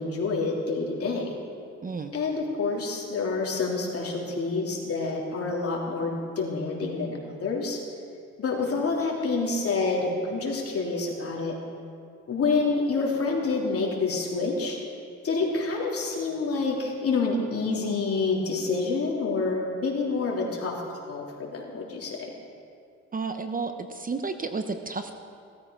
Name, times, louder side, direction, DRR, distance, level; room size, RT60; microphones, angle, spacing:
voice 1, 0.0-1.3 2.1-7.8 8.4-11.5 12.3-14.8 15.2-22.3, left 3 dB, 50° left, -2 dB, 3.2 m, -28 dB
voice 2, 1.8-2.1 23.1-25.2, right 4 dB, 30° right, 8 dB, 0.8 m, -32 dB
17.0 x 13.5 x 4.6 m, 2.3 s
cardioid pair, 90°, 30 cm